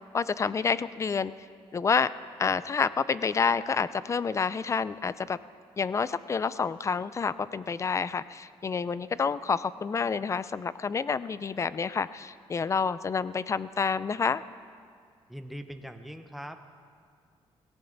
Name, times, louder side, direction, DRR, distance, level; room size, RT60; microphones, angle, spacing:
voice 1, 0.1-1.3 1.7-2.1 2.4-5.4 5.8-14.4, left 5 dB, 30° left, 16 dB, 0.4 m, -28 dB
voice 2, 15.3-16.7, equal, ahead, 6 dB, 1.0 m, -41 dB
18.0 x 18.0 x 4.0 m, 2.2 s
cardioid pair, 105°, 11 cm